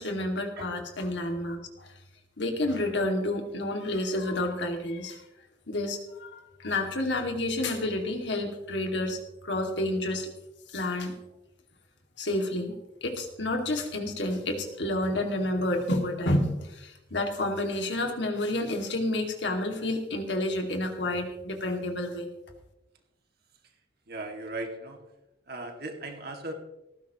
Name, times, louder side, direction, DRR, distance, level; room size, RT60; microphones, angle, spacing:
voice 1, 0.0-1.9 2.4-5.2 5.7-10.3 10.7-11.1 12.2-12.7 13.0-22.3, left 1 dB, 65° left, 3 dB, 2.3 m, -30 dB
voice 2, 24.1-25.0 25.5-26.5, right 2 dB, 55° right, 3 dB, 2.3 m, -37 dB
18.0 x 15.5 x 3.1 m, 0.92 s
head